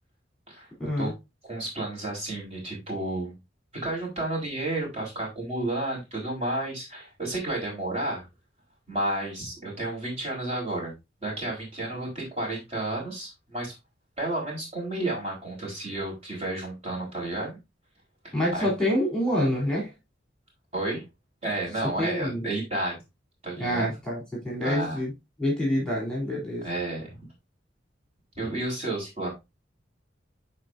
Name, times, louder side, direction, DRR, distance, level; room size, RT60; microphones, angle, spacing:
voice 1, 0.8-1.1 18.3-19.9 22.0-22.4 23.6-25.1 25.4-26.7, equal, 5° left, 3.4 m, -27 dB
voice 2, 1.5-3.3 3.8-8.3 8.9-10.9 11.2-13.7 14.2-17.6 18.2-18.7 20.7-21.0 21.4-23.0 23.4-23.9 24.6-25.0 26.6-27.3 28.4-29.3, right 2 dB, 35° right, 4.3 m, -31 dB
11.5 x 4.5 x 2.6 m
head